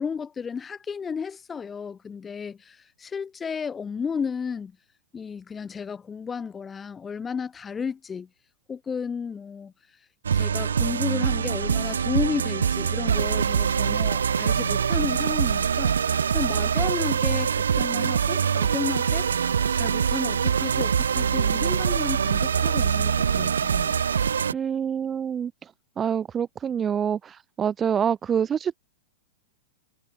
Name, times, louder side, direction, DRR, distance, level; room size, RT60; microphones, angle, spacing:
voice 1, 0.0-4.7 5.1-8.3 8.7-9.7 10.3-15.9 16.3-19.3 19.7-23.9, left 6 dB, 20° left, 3.0 m, -33 dB
sound 1, 10.2-24.5, right 7 dB, 75° right, 2.1 m, -24 dB
voice 2, 24.5-25.7 26.0-28.8, right 8 dB, 25° right, 0.6 m, -26 dB
figure-of-eight pair, 100°, 0 cm